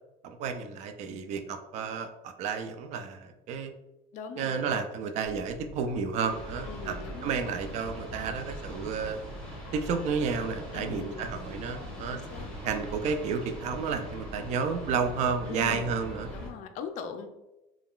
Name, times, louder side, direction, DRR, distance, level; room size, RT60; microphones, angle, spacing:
voice 1, 0.2-3.7 4.4-9.2 9.7-12.2 12.6-16.3, right 5 dB, 45° right, 7 dB, 0.4 m, -31 dB
voice 2, 4.1-4.7 6.7-7.5 10.7-11.3 11.8-12.5 15.5-15.9 16.3-17.3, left 6 dB, 50° left, 7 dB, 0.4 m, -41 dB
sound 1, 5.2-11.9, right 2 dB, 60° right, 1.1 m, -51 dB
sound 2, 6.3-16.5, equal, 5° left, 1.0 m, -41 dB
3.5 x 2.3 x 2.3 m, 0.97 s
supercardioid pair, 120°, 16 cm